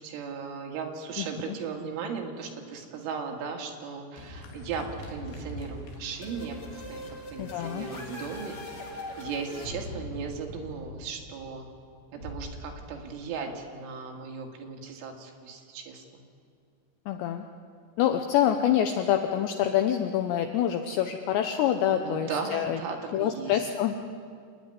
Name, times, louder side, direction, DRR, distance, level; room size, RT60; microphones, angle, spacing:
voice 1, 0.0-7.0 7.3-11.7 12.1-16.2 21.9-23.6, right 5 dB, 70° right, 1 dB, 4.2 m, -37 dB
voice 2, 1.2-1.6 7.4-7.9 17.1-17.5 18.0-22.8 23.1-23.9, left 10 dB, 85° left, 6 dB, 2.5 m, -26 dB
sound 1, 4.2-9.7, left 1 dB, 60° left, 3.9 m, -45 dB
sound 2, 6.2-11.9, left 2 dB, 40° left, 1.4 m, -41 dB
Bass drum, 12.2-13.6, equal, 30° right, 4.6 m, -43 dB
27.0 x 10.5 x 9.8 m, 2.1 s
omnidirectional pair, 6.0 m